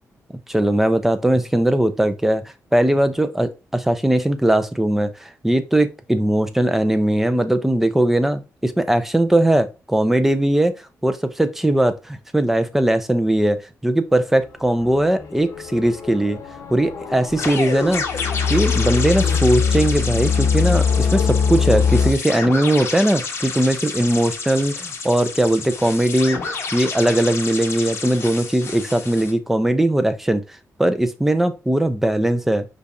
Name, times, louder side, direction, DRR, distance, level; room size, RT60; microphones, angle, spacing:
voice 1, 0.5-2.4 2.7-10.7 11.0-13.6 13.8-16.4 16.7-18.0 18.5-30.4 30.8-32.6, right 1 dB, 5° right, 0.4 m, -19 dB
sound 1, 14.8-22.1, left 6 dB, 75° left, 0.7 m, -22 dB
sound 2, 17.3-29.3, left 4 dB, 50° left, 1.0 m, -30 dB
5.1 x 2.8 x 3.4 m
wide cardioid pair, 160°, 6 cm